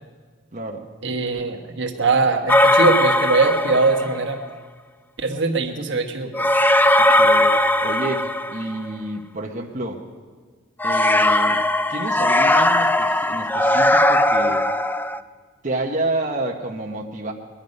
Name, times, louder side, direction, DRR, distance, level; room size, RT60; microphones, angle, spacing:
voice 1, 0.5-0.9 7.0-10.0 10.8-14.7 15.6-17.3, right 2 dB, 40° right, -1 dB, 1.1 m, -29 dB
voice 2, 1.0-4.4 5.2-6.5, right 3 dB, 65° right, 4 dB, 1.4 m, -21 dB
sound 1, 2.5-4.2 6.3-8.9 10.8-15.2, left 1 dB, 10° left, 0.3 m, -18 dB
21.0 x 11.5 x 5.4 m, 1.5 s
head